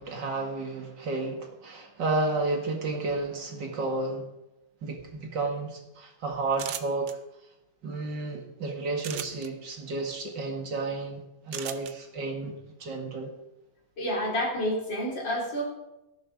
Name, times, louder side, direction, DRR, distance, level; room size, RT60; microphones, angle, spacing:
voice 1, 0.0-4.3 4.8-7.1 7.8-13.3, right 3 dB, 55° right, 2 dB, 2.5 m, -32 dB
sound 1, 6.5-7.1 9.0-9.5 11.5-11.9, right 10 dB, 80° right, 1.8 m, -36 dB
voice 2, 14.0-15.6, equal, 55° left, -2 dB, 4.8 m, -29 dB
16.0 x 11.5 x 5.1 m, 0.92 s
omnidirectional pair, 2.3 m